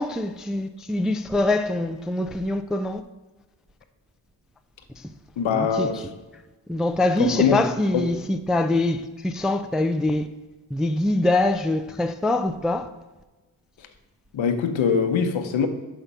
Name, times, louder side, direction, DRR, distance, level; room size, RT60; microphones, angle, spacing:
voice 1, 0.0-3.0 5.0-5.1 5.5-5.9 6.7-10.3 10.7-12.9, left 2 dB, ahead, 0.3 m, -24 dB
voice 2, 5.4-6.1 7.2-7.6 7.9-8.1 13.8-13.9 14.3-15.7, left 6 dB, 70° left, 1.0 m, -23 dB
5.8 x 5.1 x 5.5 m
supercardioid pair, 50°, 48 cm